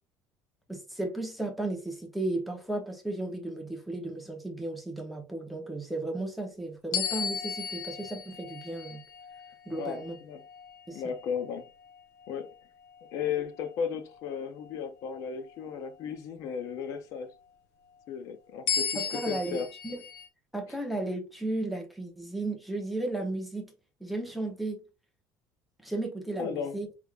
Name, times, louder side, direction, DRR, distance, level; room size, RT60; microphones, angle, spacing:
voice 1, 0.7-9.0 9.7-10.2 10.9-11.0 18.9-20.0 20.5-23.7 24.0-24.8 25.8-26.9, right 2 dB, ahead, 0.8 m, -34 dB
sound 1, 6.9-11.7 12.2-12.5 18.7-20.3, left 7 dB, 80° left, 0.9 m, -35 dB
voice 2, 9.7-10.4 10.9-11.7 12.3-12.5 13.1-17.3 18.1-19.7 26.4-26.8, left 7 dB, 50° left, 0.6 m, -35 dB
4.7 x 3.4 x 2.4 m
cardioid pair, 170°, 7 cm